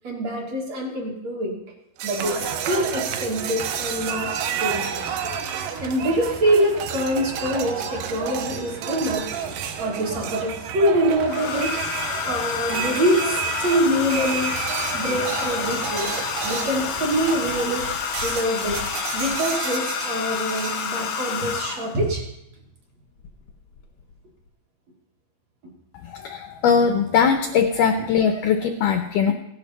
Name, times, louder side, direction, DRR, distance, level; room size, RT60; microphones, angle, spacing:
voice 1, 0.0-1.6 2.0-5.2 5.8-9.3 9.8-11.8 12.2-14.6 14.9-16.1 16.4-17.9 18.2-18.8 19.1-22.3, equal, 50° right, -1 dB, 2.4 m, -25 dB
sound 1, 2.0-6.4 6.8-16.9 17.3-17.8 18.1-20.9, right 8 dB, 90° right, 3.1 m, -33 dB
sound 2, 2.2-17.9, right 7 dB, 70° right, 2.3 m, -33 dB
Domestic sounds home sounds, 7.6-7.7 9.2-9.8 11.2-22.0 23.2-23.5 23.8-24.1, left 6 dB, 65° left, 1.4 m, -29 dB
voice 2, 26.1-29.3, left 6 dB, 90° left, 6 dB, 1.8 m, -20 dB
16.5 x 11.5 x 4.1 m, 0.85 s
omnidirectional pair, 4.6 m